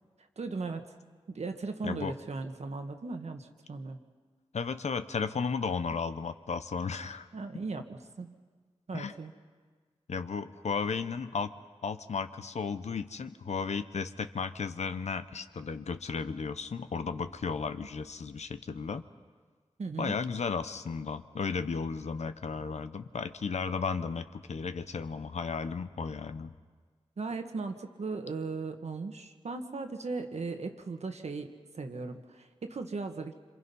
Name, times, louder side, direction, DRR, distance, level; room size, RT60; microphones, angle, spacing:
voice 1, 0.4-0.9 1.3-4.0 7.3-8.4 8.9-9.3 19.8-20.2 27.2-31.5 31.7-33.3, right 4 dB, 75° right, 6 dB, 1.5 m, -37 dB
voice 2, 1.8-2.2 4.5-7.3 8.9-9.1 10.1-11.5 11.8-19.0 20.0-26.5, left 5 dB, 85° left, 10 dB, 0.9 m, -34 dB
27.0 x 26.5 x 5.6 m, 1.5 s
wide cardioid pair, 90°, 11 cm